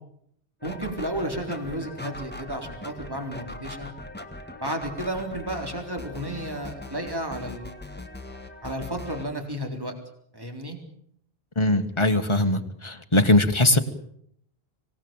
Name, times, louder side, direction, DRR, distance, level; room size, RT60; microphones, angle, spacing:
sound 1, 0.6-9.3, left 2 dB, 10° left, 1.9 m, -40 dB
voice 1, 0.6-3.9 4.6-8.0 8.6-9.9 10.3-10.8, right 1 dB, 20° right, 3 dB, 3.9 m, -32 dB
voice 2, 11.6-13.8, left 2 dB, 30° left, 7 dB, 1.8 m, -21 dB
25.5 x 18.5 x 9.0 m, 0.69 s
omnidirectional pair, 1.0 m